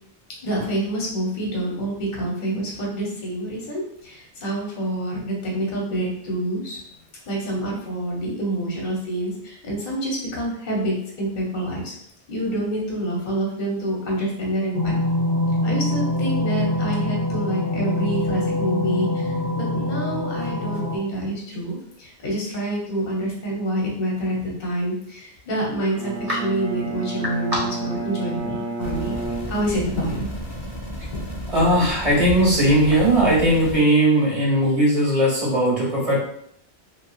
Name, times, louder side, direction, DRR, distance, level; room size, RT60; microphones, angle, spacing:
voice 1, 0.4-6.8 7.3-11.9 12.3-14.9 15.6-29.2 29.5-30.3, right 1 dB, 50° left, -3 dB, 0.9 m, -27 dB
sound 1, 14.7-21.0, left 1 dB, 75° left, 0.9 m, -24 dB
Bowed string instrument, 25.9-30.1, right 4 dB, 60° right, 0.8 m, -31 dB
sound 2, 28.8-33.8, equal, 30° left, 0.5 m, -33 dB
voice 2, 31.5-36.2, right 1 dB, 35° right, -5 dB, 1.0 m, -18 dB
2.8 x 2.4 x 2.3 m, 0.68 s
omnidirectional pair, 1.1 m